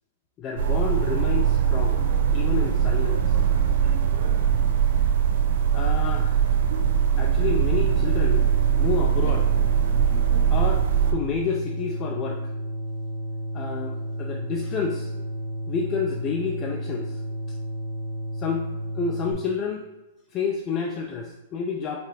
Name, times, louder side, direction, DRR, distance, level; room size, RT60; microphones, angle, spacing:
voice 1, 0.4-2.0 2.3-3.3 5.7-6.4 7.2-8.5 8.7-9.5 10.5-10.8 11.1-12.4 13.5-15.1 15.7-17.2 18.4-18.6 18.9-19.9 20.3-22.0, left 6 dB, 25° left, 1 dB, 0.3 m, -29 dB
sound 1, 0.6-11.1, right 8 dB, 55° right, 0.5 m, -21 dB
sound 2, 7.9-19.3, equal, 70° left, 1.0 m, -32 dB
4.8 x 2.5 x 2.9 m, 1.1 s
hypercardioid pair, 160°, 0 cm